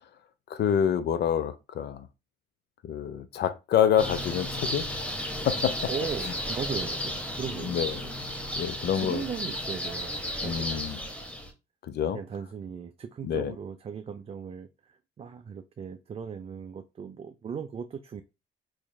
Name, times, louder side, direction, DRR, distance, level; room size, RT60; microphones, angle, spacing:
voice 1, 0.5-2.1 2.8-4.9 5.5-5.8 6.2-6.3 7.6-8.0 8.6-9.2 10.4-11.0 11.8-12.2 13.2-13.5, left 9 dB, 60° left, 0.5 m, -27 dB
sound 1, 4.0-11.5, left 1 dB, 5° left, 0.8 m, -33 dB
voice 2, 5.9-7.7 8.0-8.1 8.5-8.6 8.9-10.9 12.1-18.2, right 6 dB, 30° right, 0.3 m, -38 dB
4.0 x 3.0 x 2.2 m
cardioid pair, 90°, 20 cm